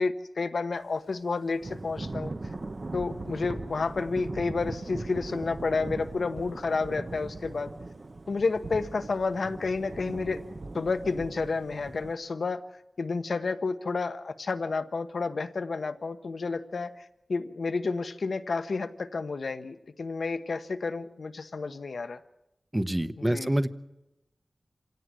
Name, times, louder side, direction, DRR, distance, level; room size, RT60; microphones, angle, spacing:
voice 1, 0.0-2.3 2.9-7.7 8.3-10.4 10.7-12.6 13.0-17.0 17.3-22.2 23.2-23.5, left 4 dB, 80° left, 9 dB, 1.2 m, -30 dB
Thunder / Rain, 1.6-12.1, right 2 dB, 50° right, 0.9 m, -39 dB
voice 2, 22.7-23.7, right 1 dB, 15° right, 12 dB, 1.0 m, -26 dB
26.5 x 17.5 x 7.6 m, 0.95 s
wide cardioid pair, 80°, 0 cm